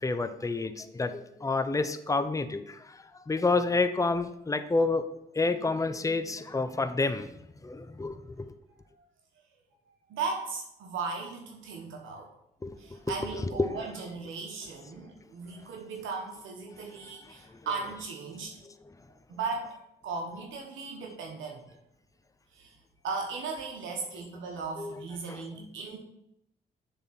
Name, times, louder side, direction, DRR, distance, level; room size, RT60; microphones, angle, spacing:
voice 1, 0.0-5.1 5.3-7.3 7.6-8.5 12.6-12.8 13.1-14.0 16.8-16.9 17.2-17.9 18.6-18.9 24.8-25.7, left 3 dB, 15° left, 11 dB, 0.6 m, -30 dB
voice 2, 10.1-12.3 12.8-18.5 19.3-19.8 20.0-21.6 22.5-22.7 23.0-26.0, right 4 dB, 80° right, 1 dB, 1.1 m, -37 dB
7.0 x 3.7 x 5.9 m, 0.79 s
supercardioid pair, 50°, 20 cm